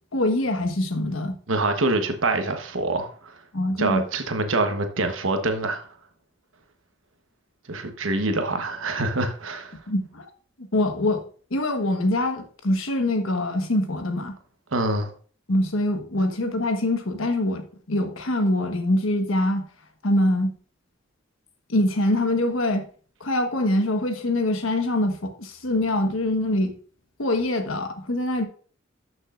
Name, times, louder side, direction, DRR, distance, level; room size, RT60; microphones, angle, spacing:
voice 1, 0.1-1.4 3.5-4.0 9.9-10.2 10.6-11.2 11.5-14.3 15.5-19.6 20.0-20.5 21.7-22.8 23.2-26.7 27.2-28.4, left 1 dB, 85° left, 1.3 m, -24 dB
voice 2, 1.5-3.3 3.8-5.9 7.7-9.8 14.7-15.1, right 2 dB, 80° right, 1.1 m, -25 dB
12.5 x 6.3 x 2.5 m
head